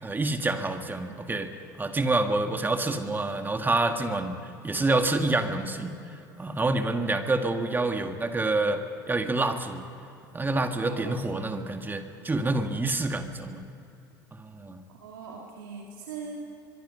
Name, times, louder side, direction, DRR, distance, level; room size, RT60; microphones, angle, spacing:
voice 1, 0.0-1.5 1.8-5.9 6.4-9.8 10.3-13.6 14.3-14.8, right 2 dB, 20° right, 6 dB, 2.0 m, -27 dB
voice 2, 10.7-11.6 14.9-16.4, right 5 dB, 80° right, -1 dB, 2.6 m, -41 dB
23.5 x 23.5 x 5.6 m, 2.8 s
hypercardioid pair, 75°, 11 cm